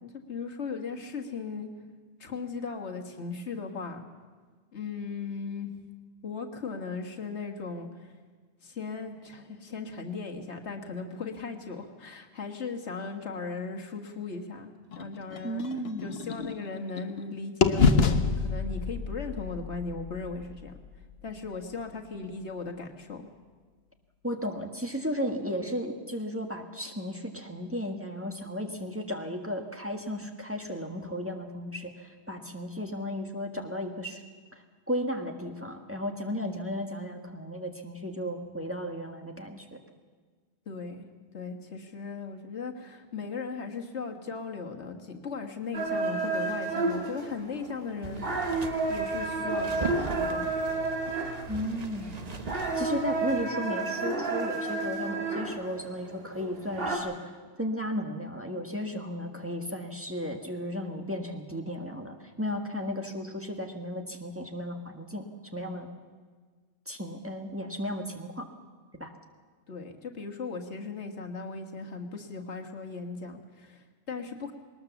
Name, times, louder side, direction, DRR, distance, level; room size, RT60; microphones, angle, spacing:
voice 1, 0.0-1.7 2.2-4.0 4.7-5.7 6.2-8.1 8.6-15.6 16.0-20.7 21.2-23.3 40.7-41.1 41.3-48.2 48.9-50.5 69.7-74.5, left 4 dB, 85° left, 4 dB, 1.9 m, -37 dB
sound 1, 14.9-17.2 17.6-21.6, left 5 dB, 65° left, 1.3 m, -28 dB
voice 2, 15.4-16.1 24.2-34.2 34.5-39.8 51.5-52.2 52.5-57.3 57.6-65.3 65.5-65.9 66.8-68.5 69.0-69.1, equal, 10° right, 3 dB, 1.6 m, -34 dB
sound 2, 45.7-57.0, right 3 dB, 60° right, 2.2 m, -31 dB
sound 3, 48.0-53.5, right 4 dB, 40° right, 1.1 m, -40 dB
20.5 x 19.0 x 7.1 m, 1.5 s
omnidirectional pair, 1.1 m